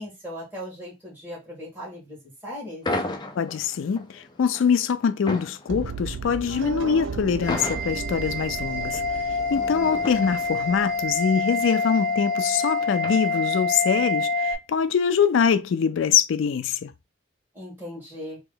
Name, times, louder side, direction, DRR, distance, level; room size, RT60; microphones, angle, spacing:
voice 1, 0.0-2.8 9.5-10.2 17.5-18.4, equal, 10° right, 1.6 m, -38 dB
sound 1, 2.8-13.8, left 2 dB, 20° left, 0.5 m, -36 dB
voice 2, 3.4-9.0 9.5-16.9, left 6 dB, 85° left, 0.4 m, -24 dB
sound 2, 5.7-11.7, right 4 dB, 75° right, 0.4 m, -35 dB
sound 3, 7.4-14.5, left 3 dB, 55° right, 1.7 m, -27 dB
3.0 x 2.9 x 3.8 m
head